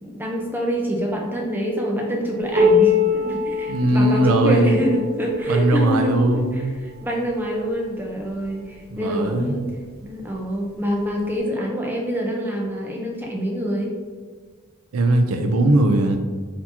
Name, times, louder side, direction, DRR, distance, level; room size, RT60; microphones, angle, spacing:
voice 1, 0.0-6.2 6.5-9.6 10.0-13.9, equal, 10° right, -1 dB, 0.5 m, -26 dB
Piano, 2.6-7.9 8.7-8.8 9.3-9.4 10.2-10.3 11.3-11.4, left 4 dB, 45° right, 0.7 m, -23 dB
voice 2, 3.7-4.8 5.5-6.6 8.9-9.5 14.9-16.2, right 1 dB, 80° right, 5 dB, 0.5 m, -19 dB
4.2 x 2.8 x 2.8 m, 1.5 s
head